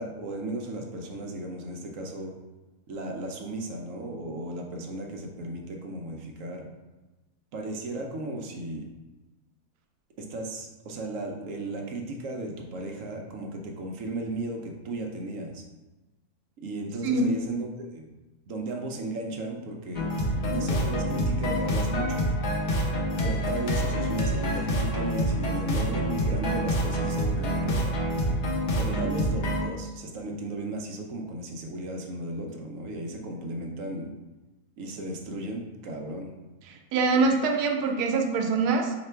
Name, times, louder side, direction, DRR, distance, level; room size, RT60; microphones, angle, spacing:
voice 1, 0.0-2.3 2.9-6.7 7.5-8.9 10.2-15.6 16.6-18.1 18.5-20.1 20.5-22.3 23.2-28.0 28.8-34.1 34.8-36.3, right 2 dB, 65° right, 2 dB, 0.9 m, -35 dB
sound 1, 19.9-29.7, equal, 60° left, 0.5 m, -27 dB
voice 2, 36.7-39.0, right 4 dB, 85° right, 3 dB, 1.2 m, -24 dB
3.2 x 2.9 x 4.4 m, 1.1 s
omnidirectional pair, 1.6 m